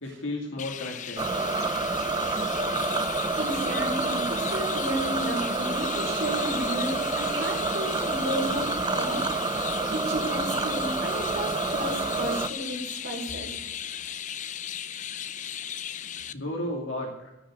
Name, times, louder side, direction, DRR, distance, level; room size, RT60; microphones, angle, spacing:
voice 1, 0.0-1.3 16.3-17.3, left 1 dB, 85° left, -1 dB, 2.5 m, -33 dB
Chirp tweet, 0.6-16.3, left 9 dB, 40° left, 0.5 m, -36 dB
sound 1, 1.2-12.5, right 3 dB, 25° right, 0.6 m, -28 dB
voice 2, 3.4-9.5 9.9-13.5, right 1 dB, 70° right, -1 dB, 4.7 m, -33 dB
17.0 x 6.3 x 7.8 m, 0.94 s
head